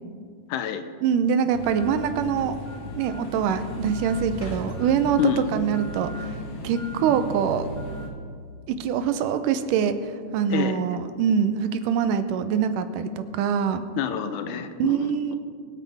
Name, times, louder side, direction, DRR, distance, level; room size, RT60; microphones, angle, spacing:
voice 1, 0.5-0.8 5.2-5.5 10.5-10.8 14.0-15.4, left 9 dB, 80° left, 9 dB, 2.1 m, -27 dB
voice 2, 1.0-2.5 2.9-6.4 6.6-7.7 8.7-13.8 14.8-15.4, right 7 dB, 80° right, 10 dB, 2.3 m, -24 dB
sound 1, 1.5-8.1, left 1 dB, 45° left, 1.7 m, -35 dB
24.0 x 8.5 x 3.5 m, 2.2 s
omnidirectional pair, 3.8 m